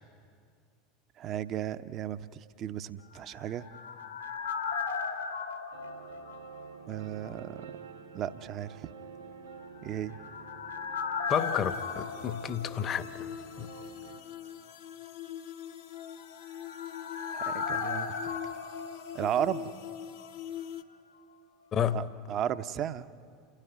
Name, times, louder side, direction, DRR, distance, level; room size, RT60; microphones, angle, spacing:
voice 1, 1.2-3.7 6.9-7.6 8.1-8.9 9.8-10.2 17.3-18.4 19.1-19.7 21.9-23.1, right 10 dB, 40° right, 0.9 m, -34 dB
sound 1, 3.2-7.0 7.3-7.4 9.8-13.5 13.7-13.8 16.1-20.0 20.2-20.3, left 5 dB, 80° left, 2.5 m, -37 dB
sound 2, 5.7-14.2, right 6 dB, 90° right, 2.7 m, -49 dB
sound 3, 11.3-20.8, left 10 dB, 60° left, 1.1 m, -43 dB
voice 2, 11.3-13.3 13.6-13.7 21.7-22.0, left 8 dB, 35° left, 1.1 m, -31 dB
29.0 x 16.5 x 9.5 m
figure-of-eight pair, 75°, 0 cm